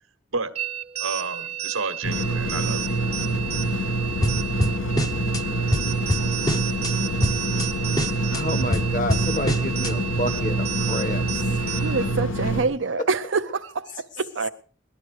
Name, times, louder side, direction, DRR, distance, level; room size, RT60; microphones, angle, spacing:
sound 1, 0.6-12.2, right 11 dB, 30° right, 0.8 m, -32 dB
voice 1, 1.0-3.0, right 4 dB, 85° right, 1.3 m, -31 dB
sound 2, 2.0-12.7, right 1 dB, 75° left, 1.3 m, -26 dB
sound 3, 4.2-5.4 5.7-6.9 7.2-7.7 8.0-9.9, left 1 dB, 20° left, 0.8 m, -26 dB
voice 2, 8.3-11.2 11.5-12.1 13.0-13.1, equal, 40° left, 1.3 m, -29 dB
voice 3, 11.8-14.5, right 4 dB, 65° right, 0.6 m, -26 dB
18.5 x 12.0 x 4.8 m
head